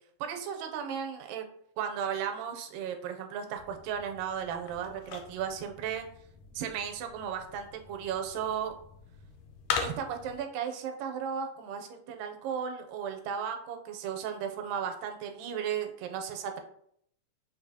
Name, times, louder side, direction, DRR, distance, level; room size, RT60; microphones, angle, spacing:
voice 1, 0.2-1.5 1.8-6.1 6.6-8.7 9.8-16.6, right 8 dB, 85° right, 5 dB, 2.2 m, -35 dB
sound 1, 3.5-10.4, left 6 dB, 80° left, 1.9 m, -41 dB
6.3 x 2.6 x 2.7 m, 0.68 s
omnidirectional pair, 3.8 m